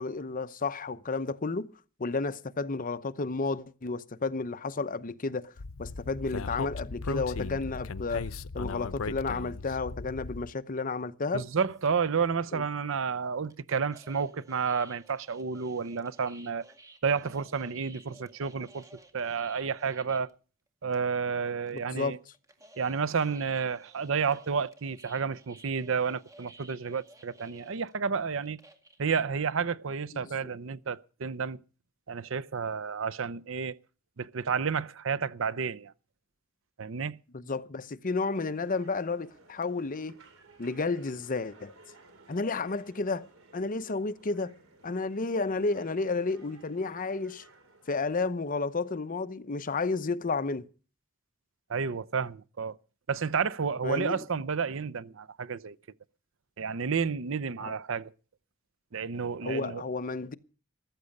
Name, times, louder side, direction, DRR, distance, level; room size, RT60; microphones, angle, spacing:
voice 1, 0.0-1.7 2.0-5.5 5.8-8.3 8.5-11.4 12.5-12.6 21.7-22.2 30.1-30.5 37.3-40.2 40.6-41.7 42.3-43.3 43.5-44.5 44.8-47.5 47.9-50.7 53.8-54.2 57.6-57.8 59.4-60.3, left 3 dB, 40° left, 0.8 m, -32 dB
Speech, 5.6-10.5, left 4 dB, 85° left, 0.7 m, -37 dB
voice 2, 11.3-16.6 17.0-18.8 19.1-20.3 20.8-22.2 22.8-28.6 29.0-31.6 32.1-33.8 34.2-35.9 36.8-37.2 51.7-52.8 53.1-55.8 56.6-58.1 58.9-59.8, right 5 dB, 70° right, 0.6 m, -31 dB
sound 1, 11.7-12.0 13.4-20.3 20.7-20.8 20.9-21.3 21.7-29.1, right 2 dB, 15° right, 1.9 m, -55 dB
sound 2, 38.1-49.3, right 2 dB, 85° right, 4.1 m, -58 dB
15.0 x 12.5 x 5.3 m
head